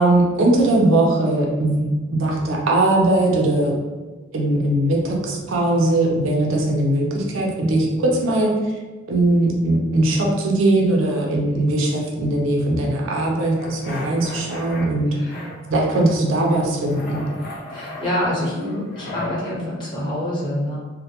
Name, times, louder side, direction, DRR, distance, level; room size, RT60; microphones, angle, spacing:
voice 1, 0.0-3.8 4.3-8.5 9.1-15.2 15.7-17.2, right 2 dB, 75° right, -1 dB, 0.5 m, -20 dB
sound 1, 13.6-14.9 15.3-16.2 16.5-19.4, left 2 dB, 50° left, 0.4 m, -35 dB
voice 2, 17.7-20.8, left 1 dB, 25° left, -8 dB, 0.9 m, -26 dB
2.1 x 2.1 x 2.8 m, 1.3 s
head